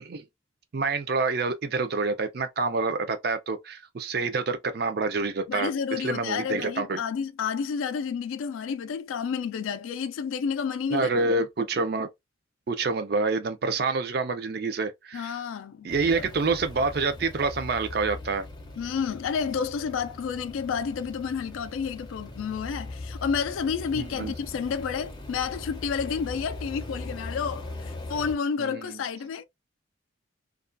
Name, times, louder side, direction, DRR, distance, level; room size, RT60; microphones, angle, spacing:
voice 1, 0.7-7.0 10.9-12.1 12.7-15.4 15.8-18.5 24.0-24.3 28.6-29.0, right 4 dB, 50° right, 0.4 m, -27 dB
voice 2, 5.5-11.1 15.1-15.9 16.2-16.3 18.8-29.4, left 6 dB, 85° left, 0.3 m, -30 dB
sound 1, 15.9-28.3, left 2 dB, 20° left, 0.5 m, -40 dB
2.3 x 2.2 x 2.4 m
head